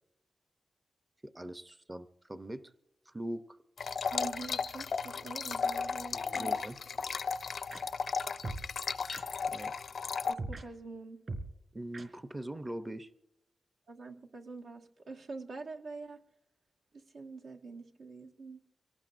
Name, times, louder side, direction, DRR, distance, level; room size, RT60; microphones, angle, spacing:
voice 1, 1.2-2.7 3.1-3.6 6.1-6.8 9.5-9.7 11.7-13.1, right 1 dB, 15° right, 10 dB, 0.6 m, -42 dB
sound 1, 3.8-10.3, left 5 dB, 65° left, 0.4 m, -35 dB
voice 2, 4.1-6.5 10.2-11.2 13.9-16.2 16.9-18.6, right 3 dB, 80° right, 1 dB, 1.5 m, -45 dB
sound 2, 6.3-6.4 7.7-7.8 8.4-8.7 9.1-9.2 10.4-10.6 11.3-11.5 11.9-12.0, right 2 dB, 45° right, 3.7 m, -39 dB
25.5 x 18.0 x 2.5 m, 0.89 s
wide cardioid pair, 140°, 0 cm